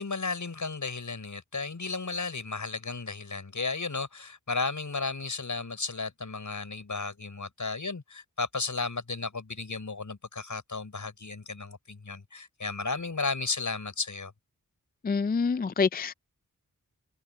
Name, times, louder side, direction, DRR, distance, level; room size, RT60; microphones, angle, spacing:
voice 1, 0.0-14.3, left 3 dB, 60° left, 6.5 m, -34 dB
voice 2, 15.0-16.1, left 5 dB, 30° left, 0.4 m, -26 dB
wide cardioid pair, 85°, 34 cm